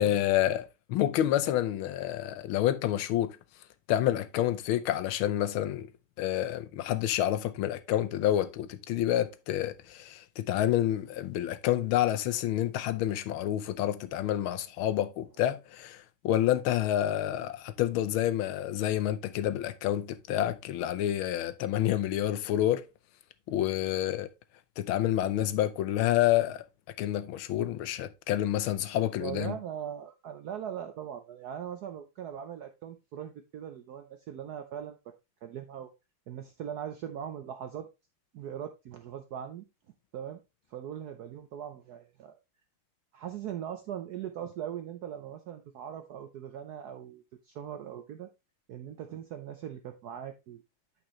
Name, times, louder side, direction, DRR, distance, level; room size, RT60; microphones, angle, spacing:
voice 1, 0.0-3.4 3.9-5.9 6.2-22.8 23.5-24.3 24.8-26.6 27.0-29.5, left 12 dB, 75° left, 1.4 m, -28 dB
voice 2, 29.2-35.0 35.4-35.9 36.3-37.9 38.3-39.6 40.1-40.4 40.7-42.4 43.1-48.3 48.7-50.6, right 9 dB, 75° right, 0.9 m, -40 dB
8.7 x 5.3 x 3.1 m
omnidirectional pair, 2.3 m